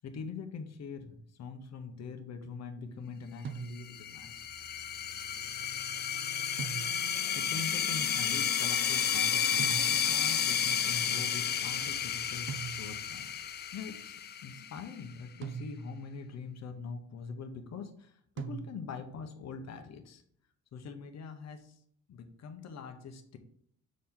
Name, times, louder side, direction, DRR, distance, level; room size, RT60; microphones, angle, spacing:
voice 1, 0.0-4.4 4.8-4.9 7.3-20.2 20.7-21.8 22.1-23.4, left 5 dB, 60° left, 7 dB, 1.0 m, -43 dB
sound 1, 3.5-4.2 6.6-7.3 9.6-10.4 12.5-13.2 15.4-16.2 18.4-19.2, right 7 dB, 40° right, 0.6 m, -42 dB
sound 2, 3.8-15.0, left 8 dB, 35° left, 0.4 m, -32 dB
6.3 x 4.5 x 3.7 m, 0.65 s
cardioid pair, 90°, 30 cm